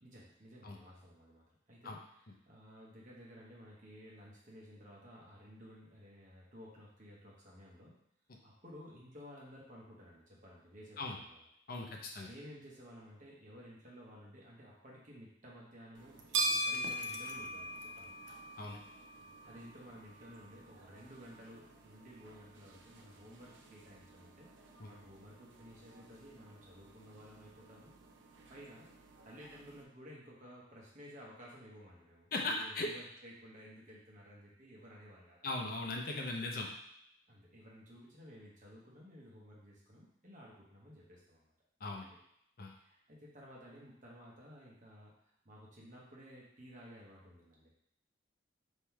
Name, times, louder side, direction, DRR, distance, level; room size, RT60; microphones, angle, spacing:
voice 1, 0.0-8.0 8.4-11.4 12.2-18.2 19.4-27.9 28.5-28.9 29.2-35.5 37.3-41.5 42.0-42.2 42.7-45.2 45.4-47.7, equal, 45° right, -4 dB, 1.2 m, -55 dB
voice 2, 11.7-12.3 18.6-18.8 24.8-24.9 32.3-32.9 35.4-36.7 41.8-42.1 42.6-42.7, left 2 dB, 50° left, 1 dB, 0.6 m, -38 dB
sound 1, 16.0-29.8, right 1 dB, 85° right, 0.6 m, -43 dB
3.7 x 3.1 x 4.5 m, 0.75 s
head